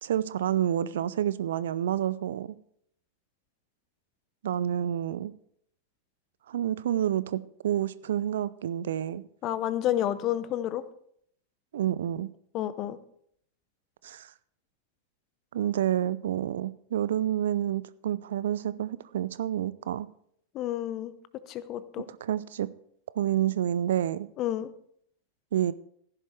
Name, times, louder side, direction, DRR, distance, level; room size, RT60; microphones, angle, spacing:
voice 1, 0.0-2.5 4.4-5.3 6.5-9.2 11.7-12.3 14.0-14.3 15.5-20.1 22.2-22.7 23.2-24.3 25.5-25.7, right 11 dB, 60° right, 17 dB, 0.5 m, -29 dB
voice 2, 9.4-10.8 12.5-13.0 20.5-21.1 21.5-22.1 24.4-24.7, left 12 dB, 35° left, 16 dB, 0.8 m, -30 dB
15.5 x 11.0 x 3.2 m, 0.67 s
figure-of-eight pair, 90°, 0 cm